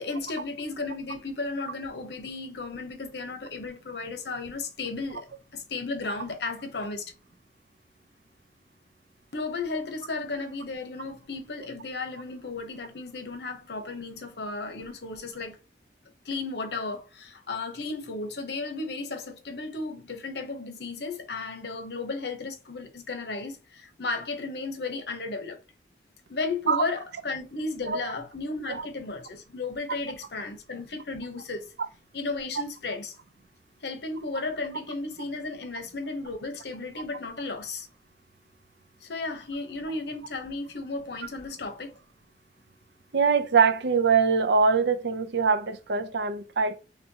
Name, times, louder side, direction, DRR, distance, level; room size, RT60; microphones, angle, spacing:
voice 1, 0.0-7.1 9.3-15.6 16.2-25.6 26.3-31.7 32.1-33.1 33.8-37.9 39.0-41.9, left 3 dB, 70° left, 0.9 m, -34 dB
voice 2, 43.1-46.8, right 5 dB, 80° right, 0.6 m, -23 dB
4.2 x 3.4 x 2.8 m
head